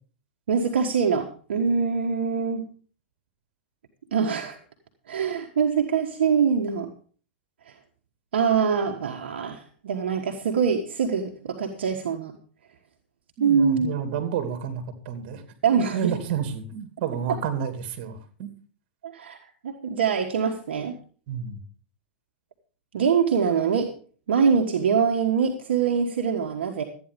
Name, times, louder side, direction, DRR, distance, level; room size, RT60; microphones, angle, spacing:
voice 1, 0.5-2.7 4.1-4.6 5.1-6.9 7.7-7.8 8.3-12.4 13.4-13.9 15.6-16.1 17.3-17.4 19.0-19.4 19.6-20.9 22.9-23.9 24.3-26.8, right 6 dB, 75° right, 3 dB, 1.5 m, -24 dB
voice 2, 13.4-15.4 15.8-18.5 21.3-21.6, right 8 dB, 55° right, 7 dB, 2.7 m, -30 dB
13.0 x 9.5 x 5.2 m, 0.42 s
hypercardioid pair, 110°, 6 cm